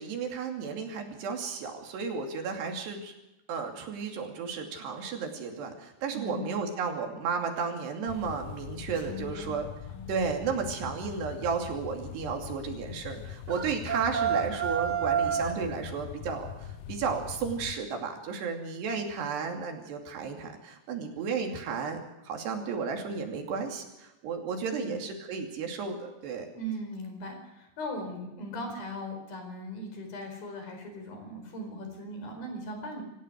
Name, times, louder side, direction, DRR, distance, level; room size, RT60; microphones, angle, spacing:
voice 1, 0.0-3.1 3.5-9.6 10.1-22.0 22.2-26.5, right 5 dB, 80° right, 3 dB, 4.8 m, -33 dB
voice 2, 6.1-6.5 9.0-9.5 9.9-10.1 24.6-25.0 26.5-33.0, equal, 60° left, 5 dB, 6.2 m, -39 dB
sound 1, 8.1-17.8, left 9 dB, 85° left, 1.8 m, -43 dB
sound 2, 13.5-15.6, right 8 dB, 65° right, 0.7 m, -29 dB
26.5 x 15.5 x 6.4 m, 0.98 s
omnidirectional pair, 4.8 m